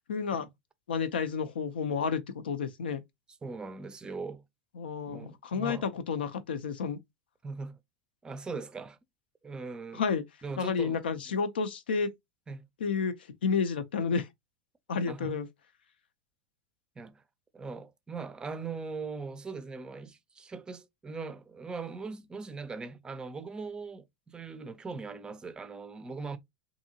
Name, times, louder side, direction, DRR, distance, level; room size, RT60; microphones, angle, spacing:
voice 1, 0.1-0.5 0.9-3.0 4.8-7.0 9.9-10.2 10.6-12.1 12.8-13.1 13.4-14.3 14.9-15.5, left 5 dB, 90° left, 0.5 m, -30 dB
voice 2, 3.4-4.4 5.1-5.9 7.4-7.8 8.2-9.0 9.4-10.0 10.4-11.4 12.5-12.7 15.0-15.4 17.0-17.2 17.5-26.4, right 4 dB, 15° right, 0.4 m, -40 dB
2.7 x 2.6 x 2.7 m
hypercardioid pair, 110°, 5 cm